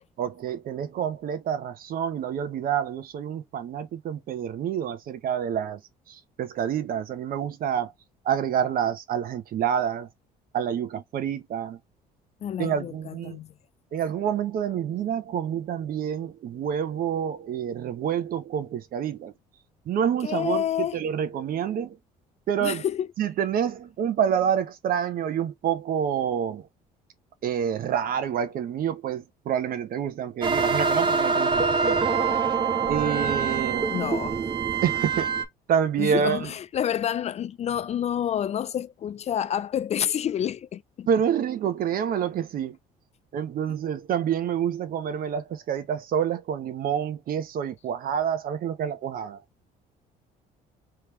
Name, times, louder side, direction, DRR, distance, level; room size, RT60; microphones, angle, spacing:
voice 1, 0.2-5.8 6.1-7.9 8.2-10.1 10.5-11.8 12.6-13.4 13.9-19.3 19.9-22.0 22.5-22.8 23.2-26.7 27.4-32.1 32.9-33.9 34.8-35.3 35.7-36.5 41.1-42.8 43.3-49.4, right 8 dB, 60° right, 1.0 m, -28 dB
voice 2, 12.4-13.5 20.2-21.0 22.6-23.1 33.9-34.4 36.0-41.1, left 10 dB, 40° left, 0.4 m, -28 dB
sound 1, 30.4-35.5, right 5 dB, 30° right, 0.9 m, -24 dB
3.5 x 3.1 x 3.0 m
cardioid pair, 110°, 17 cm